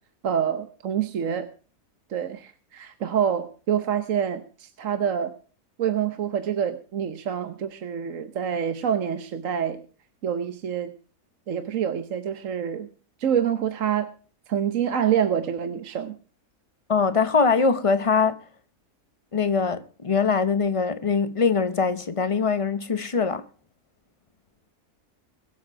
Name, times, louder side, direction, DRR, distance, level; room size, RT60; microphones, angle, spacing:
voice 1, 0.2-1.5 2.1-5.3 5.8-9.8 10.2-10.9 11.5-12.9 13.2-14.1 14.5-16.1, right 8 dB, 60° right, 1.3 m, -26 dB
voice 2, 16.9-18.4 19.3-23.4, left 5 dB, 25° left, 0.9 m, -22 dB
22.5 x 7.6 x 4.7 m
omnidirectional pair, 1.6 m